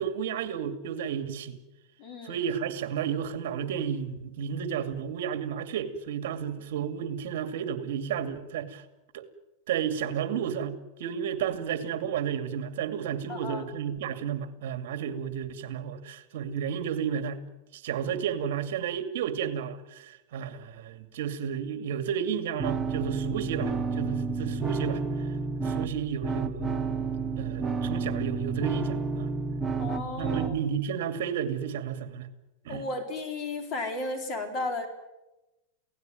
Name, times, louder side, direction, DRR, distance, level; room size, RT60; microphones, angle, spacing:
voice 1, 0.0-1.6 2.2-8.8 9.1-9.2 9.7-17.4 17.7-25.3 25.6-26.8 27.4-29.3 30.2-32.3 32.6-32.8, right 8 dB, 65° right, 10 dB, 2.5 m, -32 dB
voice 2, 2.0-2.4 13.3-13.6 29.8-30.5 32.7-34.9, left 2 dB, 30° left, 7 dB, 4.1 m, -34 dB
sound 1, 22.6-30.6, right 4 dB, 10° right, 1.2 m, -30 dB
28.0 x 17.5 x 9.3 m, 1.0 s
supercardioid pair, 170°, 0 cm